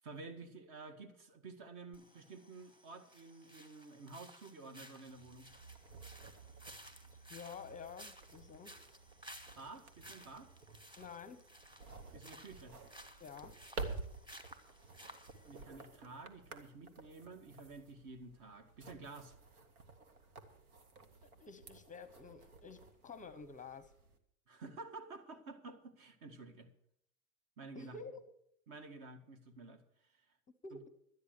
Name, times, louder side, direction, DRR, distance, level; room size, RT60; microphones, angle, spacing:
voice 1, 0.0-5.5 9.6-10.5 12.1-12.8 15.4-19.4 24.5-26.7 27.6-28.0 28.7-30.3 30.7-30.8, right 3 dB, 45° right, 8 dB, 1.9 m, -51 dB
sound 1, 1.9-15.6, equal, 10° right, 1.5 m, -57 dB
sound 2, 5.1-24.2, right 3 dB, 85° right, 1.7 m, -52 dB
voice 2, 7.1-8.8 11.0-11.4 13.2-13.6 21.2-23.9 27.7-28.2 30.6-30.8, left 5 dB, 20° left, 14 dB, 0.7 m, -50 dB
12.5 x 9.8 x 6.6 m, 0.71 s
hypercardioid pair, 100°, 42 cm